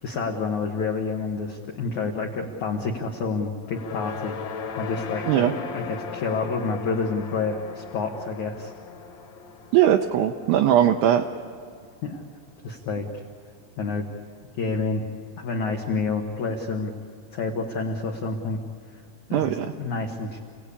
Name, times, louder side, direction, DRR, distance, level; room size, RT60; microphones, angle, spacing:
voice 1, 0.0-8.7 12.0-12.2 12.6-13.2 13.8-14.0 14.6-15.0 15.4-16.9 17.3-18.6 19.3-20.4, left 4 dB, 85° left, 1 dB, 1.6 m, -29 dB
sound 1, 3.6-12.0, left 5 dB, 60° left, 2.2 m, -38 dB
voice 2, 9.7-11.3 19.3-19.7, right 11 dB, 85° right, 4 dB, 2.4 m, -20 dB
30.0 x 17.5 x 8.4 m, 2.1 s
omnidirectional pair, 5.7 m